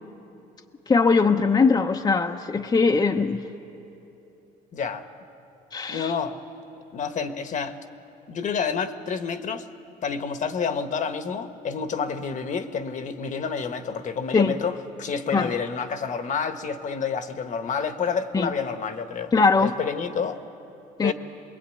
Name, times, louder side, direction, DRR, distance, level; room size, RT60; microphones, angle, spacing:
voice 1, 0.9-3.4 5.7-6.1 14.3-14.5 15.3-15.5 18.3-18.5 19.3-19.7 21.0-21.1, left 4 dB, 25° left, 3 dB, 0.8 m, -21 dB
voice 2, 4.7-5.1 5.9-6.4 6.9-7.8 8.3-9.7 10.0-20.4 21.0-21.1, left 6 dB, 50° left, 9 dB, 1.3 m, -29 dB
24.5 x 21.5 x 9.1 m, 2.9 s
cardioid pair, 110°, 17 cm